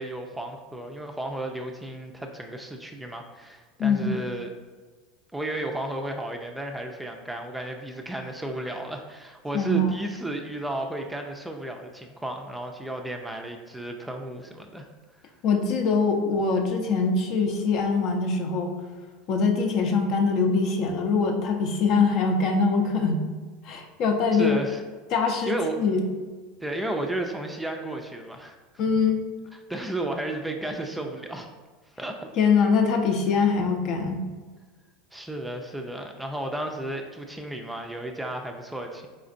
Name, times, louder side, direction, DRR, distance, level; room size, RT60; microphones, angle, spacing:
voice 1, 0.0-4.5 5.3-14.9 24.3-24.8 25.5-25.8 26.6-28.6 29.5-31.5 32.0-32.3 35.1-39.1, right 1 dB, 5° right, 3 dB, 0.4 m, -33 dB
voice 2, 3.8-4.1 9.5-9.9 15.4-18.8 19.3-23.2 23.6-24.6 25.1-26.0 28.8-29.2 32.4-34.2, left 4 dB, 55° left, 4 dB, 0.6 m, -23 dB
4.3 x 3.9 x 2.5 m, 1.4 s
supercardioid pair, 110°, 0 cm